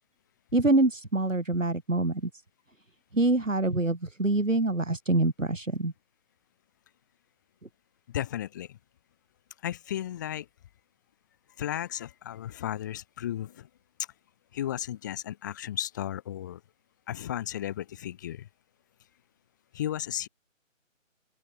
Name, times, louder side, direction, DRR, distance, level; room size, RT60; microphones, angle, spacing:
voice 1, 0.5-2.3 3.1-5.9, right 2 dB, 70° right, 7.6 m, -25 dB
voice 2, 8.1-8.8 9.6-10.5 11.6-13.7 14.5-16.6 17.1-18.5 19.7-20.3, left 11 dB, 15° left, 3.7 m, -34 dB
open air
figure-of-eight pair, 160°, 40 cm